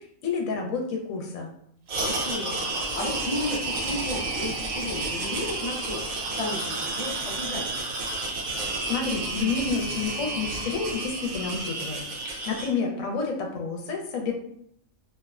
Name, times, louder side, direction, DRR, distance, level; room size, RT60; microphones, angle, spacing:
voice 1, 0.0-1.5 8.6-14.3, left 4 dB, 80° left, 0 dB, 1.0 m, -30 dB
sound 1, 1.9-12.7, right 2 dB, 85° right, 1.0 m, -31 dB
voice 2, 2.0-6.0 6.4-7.9, left 2 dB, 60° left, -2 dB, 0.3 m, -34 dB
2.7 x 2.0 x 2.3 m, 0.69 s
omnidirectional pair, 1.4 m